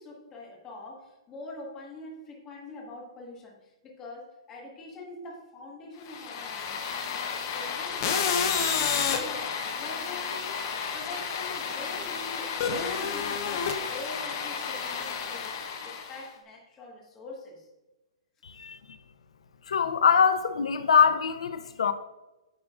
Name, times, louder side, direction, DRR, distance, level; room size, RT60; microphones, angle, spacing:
voice 1, 0.0-6.8 7.1-15.5 15.8-17.7 18.5-18.6, left 2 dB, 15° left, 1.3 m, -44 dB
sound 1, 6.1-16.3, left 6 dB, 30° left, 0.7 m, -31 dB
voice 2, 18.4-18.8 19.7-21.9, left 7 dB, 85° left, 0.6 m, -23 dB
10.0 x 6.2 x 2.4 m
hypercardioid pair, 180°, 3 cm